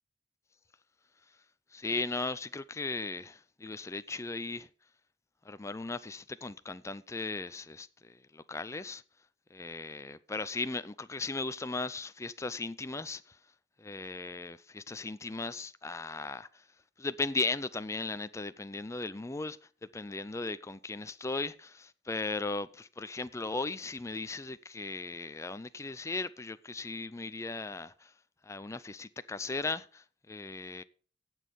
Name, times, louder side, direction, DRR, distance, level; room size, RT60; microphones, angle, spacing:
voice 1, 1.7-4.7 5.4-9.0 9.5-13.4 13.8-16.6 17.0-19.6 19.9-28.1 28.4-30.8, left 3 dB, 15° left, 0.4 m, -37 dB
16.5 x 6.4 x 5.2 m
head